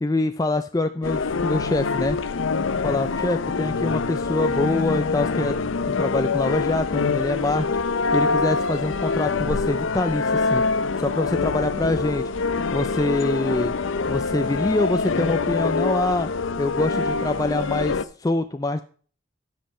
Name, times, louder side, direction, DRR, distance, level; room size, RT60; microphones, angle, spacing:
voice 1, 0.0-2.2 2.8-5.6 5.9-7.7 8.1-10.6 11.0-12.3 12.7-13.7 14.1-16.3 16.6-18.8, left 2 dB, 20° left, 8 dB, 0.4 m, -25 dB
sound 1, 1.0-18.0, left 4 dB, 75° left, 0.6 m, -25 dB
12.5 x 7.5 x 4.3 m, 0.43 s
head